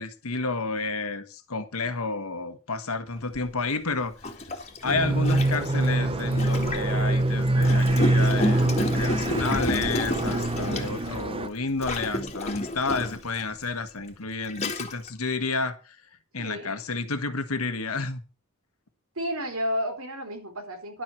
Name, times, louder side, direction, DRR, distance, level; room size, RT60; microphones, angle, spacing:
voice 1, 0.0-4.3 4.8-16.0 16.3-18.2, left 3 dB, 75° left, 1.4 m, -31 dB
Gurgling, 3.3-3.5 4.2-7.0 7.6-11.2 11.8-13.3 14.0-14.1 14.5-15.1, left 1 dB, 30° left, 2.0 m, -30 dB
sound 1, 4.8-11.5, right 1 dB, 25° right, 0.9 m, -24 dB
voice 2, 16.4-16.7 19.2-21.0, equal, 70° right, 3.5 m, -31 dB
11.5 x 7.6 x 6.3 m
head